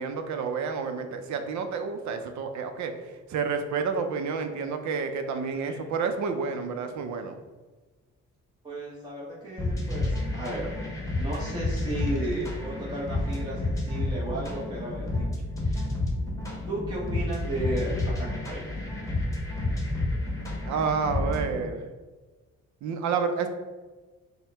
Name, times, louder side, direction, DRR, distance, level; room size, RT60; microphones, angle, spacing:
voice 1, 0.0-2.9 3.3-7.4 20.7-21.8 22.8-23.5, right 5 dB, 70° right, 7 dB, 0.5 m, -29 dB
voice 2, 8.6-10.7 11.2-15.3 15.6-15.9 16.7-18.6, right 1 dB, 15° right, -7 dB, 0.9 m, -34 dB
sound 1, 9.6-21.6, left 2 dB, 10° left, 1.0 m, -30 dB
4.5 x 2.1 x 3.3 m, 1.3 s
cardioid pair, 90°, 30 cm